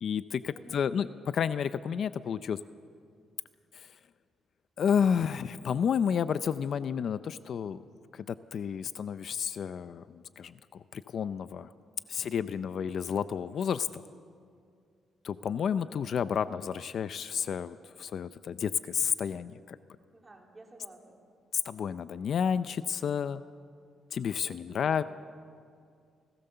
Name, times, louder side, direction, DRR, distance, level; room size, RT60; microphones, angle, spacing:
voice 1, 0.0-1.1 1.3-2.6 3.7-3.9 4.8-7.8 8.1-11.7 12.1-14.0 15.2-19.8 21.6-23.4 24.1-25.0, left 7 dB, 55° left, 13 dB, 0.5 m, -31 dB
voice 2, 0.5-1.0 20.1-21.2 24.4-25.0, right 2 dB, 15° right, 1 dB, 2.9 m, -52 dB
29.0 x 17.5 x 6.8 m, 2.3 s
cardioid pair, 155°, 0 cm